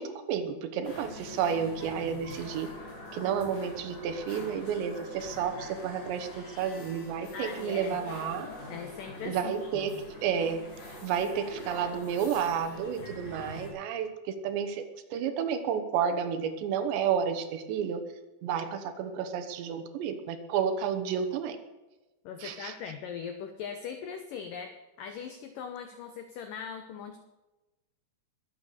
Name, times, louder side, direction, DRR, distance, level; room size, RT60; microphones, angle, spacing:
voice 1, 0.0-2.7 3.1-8.5 9.2-9.9 10.2-10.6 11.0-14.8 15.1-18.0 18.4-21.6 22.4-22.7, right 7 dB, 80° right, 9 dB, 3.4 m, -31 dB
sound 1, 0.8-13.7, left 2 dB, 45° left, 5.6 m, -44 dB
voice 2, 7.3-8.0 8.7-9.9 22.2-27.2, left 7 dB, 85° left, 7 dB, 1.9 m, -40 dB
21.5 x 8.0 x 6.7 m, 1.1 s
omnidirectional pair, 5.2 m